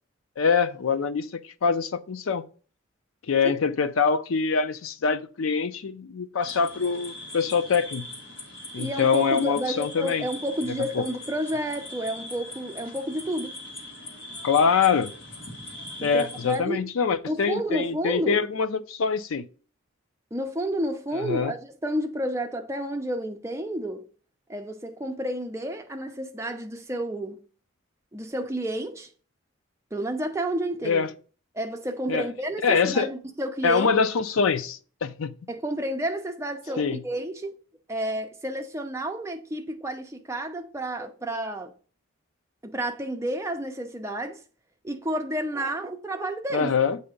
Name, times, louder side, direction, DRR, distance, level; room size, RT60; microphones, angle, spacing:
voice 1, 0.4-2.4 3.3-8.0 8.7-10.3 10.9-11.0 14.4-15.1 16.0-19.4 21.1-21.5 30.8-31.1 32.1-32.3 32.6-33.1 33.6-35.3 36.8-37.0 46.5-47.0, left 5 dB, 85° left, 0.5 m, -24 dB
sound 1, 6.4-16.6, left 2 dB, 65° left, 1.7 m, -40 dB
voice 2, 8.8-13.6 16.0-16.9 17.3-18.4 20.3-24.1 24.5-27.4 28.1-29.1 29.9-31.1 31.5-33.9 35.5-37.6 37.9-41.7 42.6-44.4 44.8-46.7, right 1 dB, 15° right, 0.6 m, -30 dB
7.8 x 2.7 x 5.0 m
head